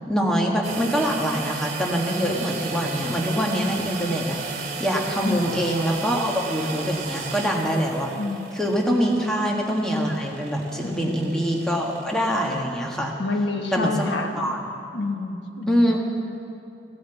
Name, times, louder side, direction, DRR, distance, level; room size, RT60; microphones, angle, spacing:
voice 1, 0.1-8.1 8.5-13.1 13.7-14.6 15.7-16.0, equal, 5° left, -1 dB, 1.6 m, -24 dB
sound 1, 0.6-12.6, right 4 dB, 45° right, 2.1 m, -35 dB
voice 2, 5.2-5.5 8.2-8.4 10.8-11.3 13.2-14.5 14.9-15.9, left 2 dB, 90° left, 5 dB, 1.3 m, -28 dB
16.5 x 10.5 x 8.1 m, 2.7 s
head